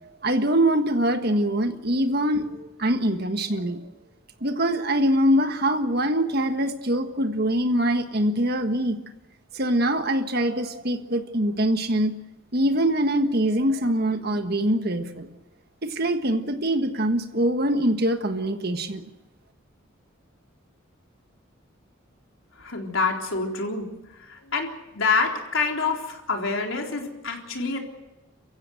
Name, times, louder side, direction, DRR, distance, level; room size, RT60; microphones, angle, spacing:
voice 1, 0.2-3.8 4.4-9.0 9.5-12.1 12.5-15.3 15.8-19.0, right 1 dB, 50° right, 7 dB, 1.5 m, -23 dB
voice 2, 22.6-23.9 24.2-27.8, left 4 dB, 80° left, 1 dB, 3.8 m, -27 dB
29.5 x 15.5 x 7.8 m, 1.0 s
head